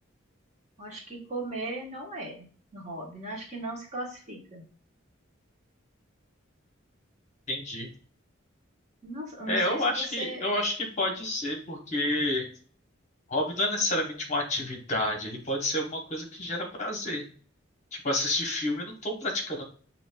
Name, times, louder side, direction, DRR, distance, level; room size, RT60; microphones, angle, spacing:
voice 1, 0.8-4.6 9.0-10.6, right 1 dB, 35° right, -2 dB, 1.2 m, -38 dB
voice 2, 7.5-7.9 9.5-12.4 13.3-17.2 17.9-19.6, left 1 dB, 35° left, 1 dB, 1.0 m, -29 dB
7.1 x 2.8 x 2.2 m, 0.43 s
head